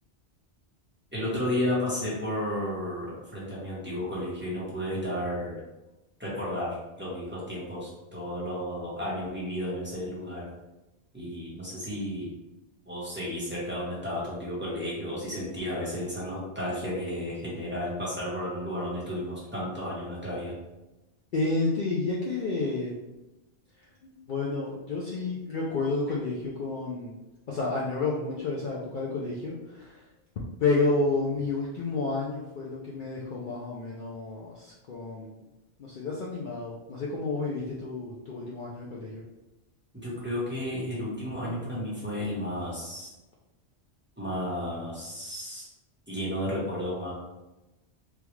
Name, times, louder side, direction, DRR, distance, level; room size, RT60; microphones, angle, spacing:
voice 1, 1.1-5.6 6.2-10.4 11.1-12.3 12.8-20.5 39.9-43.1 44.2-45.7 46.1-47.1, left 1 dB, 10° right, -9 dB, 1.0 m, -33 dB
voice 2, 21.3-22.9 24.0-27.1 27.5-30.1 30.6-35.5 35.8-39.2, left 3 dB, 55° left, -4 dB, 0.6 m, -30 dB
3.4 x 2.3 x 3.0 m, 1.0 s
omnidirectional pair, 1.2 m